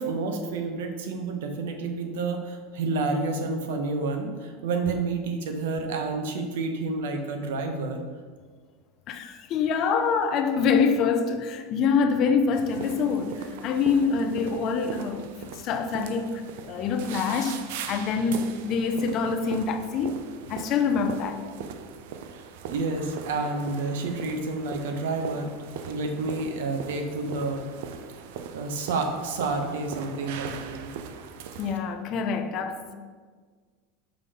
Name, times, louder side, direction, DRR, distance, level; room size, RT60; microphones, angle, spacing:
voice 1, 0.0-8.0 22.3-25.5 25.9-27.7 28.5-30.9, right 3 dB, 90° right, 0.9 m, -29 dB
voice 2, 9.1-21.4 31.6-32.9, left 5 dB, 35° left, 0.5 m, -26 dB
sound 1, 12.5-31.7, right 7 dB, 65° right, 0.5 m, -40 dB
5.5 x 5.2 x 4.2 m
supercardioid pair, 170°, 0 cm